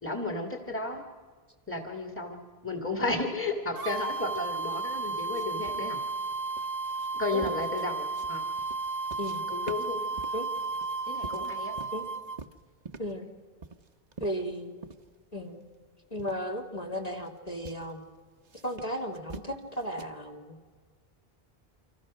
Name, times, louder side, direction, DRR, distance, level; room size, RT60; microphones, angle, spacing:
voice 1, 0.0-1.0 1.7-6.0 7.1-8.4 9.5-10.2 11.1-11.7, left 2 dB, 10° left, 4 dB, 2.2 m, -33 dB
sound 1, 3.8-12.4, right 3 dB, 70° right, 1.2 m, -33 dB
sound 2, 5.3-9.4 9.7-12.1 12.4-13.2 13.6-15.1 15.5-15.6 16.2-16.4 17.0-17.3 17.7-17.9 18.4-20.0, right 4 dB, 45° right, 1.0 m, -46 dB
voice 2, 14.2-14.7 15.3-15.6 16.1-18.0 18.6-20.6, equal, 40° left, 0 dB, 2.7 m, -35 dB
29.5 x 25.5 x 6.3 m, 1.5 s
omnidirectional pair, 1.0 m